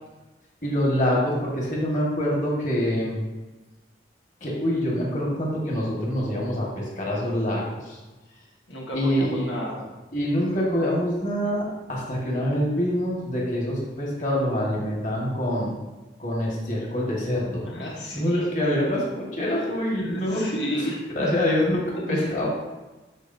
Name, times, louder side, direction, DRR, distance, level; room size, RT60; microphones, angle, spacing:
voice 1, 0.6-3.2 4.4-8.0 8.9-9.5 10.1-15.7 16.2-17.7 18.1-20.4 21.2-22.5, equal, 45° left, -4 dB, 1.7 m, -25 dB
voice 2, 8.7-9.9 17.6-18.5 19.4-19.6 19.9-21.3 21.9-22.3, equal, 90° left, -3 dB, 1.6 m, -32 dB
13.0 x 4.9 x 2.7 m, 1.1 s
head